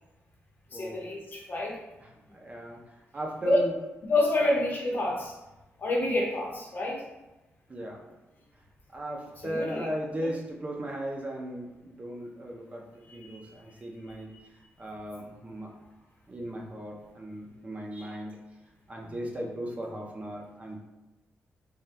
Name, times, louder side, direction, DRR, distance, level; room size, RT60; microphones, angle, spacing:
voice 1, 0.7-1.8 3.5-3.6 4.1-5.4 5.8-7.0 9.4-9.9 13.1-13.4, left 2 dB, 45° left, -3 dB, 0.8 m, -28 dB
voice 2, 2.0-2.8 3.1-3.8 4.4-4.5 7.7-8.0 8.9-14.3 14.8-15.7 16.3-18.4 18.9-20.8, right 1 dB, 25° right, -1 dB, 0.5 m, -37 dB
3.5 x 2.2 x 2.6 m, 1.1 s
wide cardioid pair, 125°, 5 cm